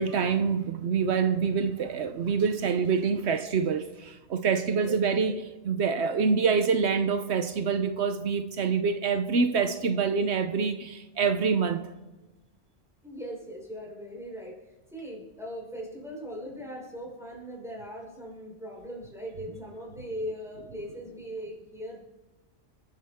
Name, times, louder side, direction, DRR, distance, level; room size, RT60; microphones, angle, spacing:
voice 1, 0.0-11.9, right 5 dB, 80° right, 1.1 m, -26 dB
voice 2, 13.0-14.6 14.9-22.0, equal, 5° right, 5.2 m, -39 dB
29.0 x 10.5 x 3.6 m
omnidirectional pair, 1.1 m